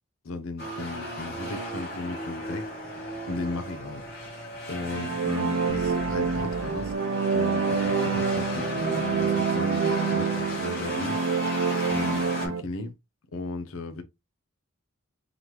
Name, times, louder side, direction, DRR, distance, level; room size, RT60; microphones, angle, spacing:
voice 1, 0.2-2.7 3.3-4.0 4.7-6.9 7.3-12.9 13.3-14.0, left 3 dB, 75° left, 0.6 m, -36 dB
sound 1, 0.6-12.5, equal, 45° left, 1.8 m, -35 dB
sound 2, 4.7-12.6, right 5 dB, 75° right, 0.5 m, -27 dB
sound 3, 5.7-7.0, right 1 dB, 5° right, 0.8 m, -42 dB
3.9 x 3.2 x 2.9 m
head